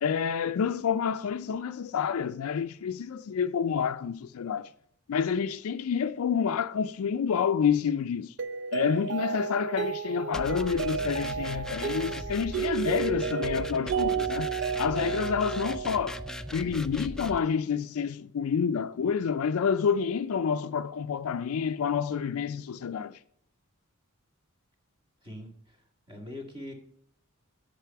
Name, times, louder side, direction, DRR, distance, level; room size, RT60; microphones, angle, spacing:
voice 1, 0.0-4.7 5.1-8.3 8.7-14.5 14.8-16.2 16.5-23.2, left 7 dB, 70° left, 0.4 m, -28 dB
Mallet percussion, 8.4-16.5, right 6 dB, 50° right, 0.5 m, -32 dB
sound 1, 10.3-17.4, left 1 dB, 5° left, 0.4 m, -39 dB
voice 2, 25.2-25.8 26.1-26.7, left 1 dB, 25° right, 2.0 m, -42 dB
8.1 x 6.8 x 5.7 m
head